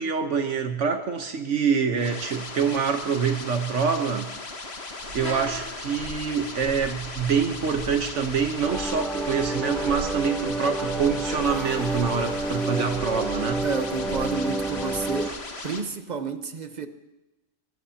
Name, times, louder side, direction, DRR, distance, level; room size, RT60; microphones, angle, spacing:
voice 1, 0.0-4.3 5.1-13.6, right 6 dB, 70° right, 5 dB, 1.3 m, -25 dB
sound 1, 2.0-15.8, left 3 dB, 55° left, 1.7 m, -38 dB
sound 2, 5.0-15.3, right 1 dB, 55° right, 8.0 m, -39 dB
sound 3, 8.6-15.3, right 2 dB, ahead, 0.7 m, -30 dB
voice 2, 13.6-15.4 15.6-16.9, right 5 dB, 35° right, 8 dB, 1.1 m, -30 dB
23.5 x 18.0 x 2.8 m, 1.0 s
omnidirectional pair, 1.3 m